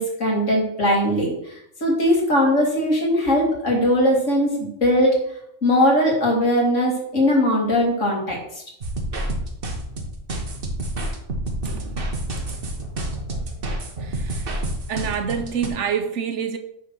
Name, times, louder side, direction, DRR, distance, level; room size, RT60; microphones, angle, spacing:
voice 1, 0.0-1.3 1.8-5.2 5.6-8.6, equal, 80° left, 2.7 m, -20 dB
sound 1, 8.8-15.7, right 1 dB, 50° right, 1.3 m, -28 dB
voice 2, 11.6-12.1 12.4-12.6 14.0-14.5 14.9-16.6, right 7 dB, 70° right, 1.2 m, -27 dB
8.8 x 3.9 x 6.1 m
omnidirectional pair, 1.3 m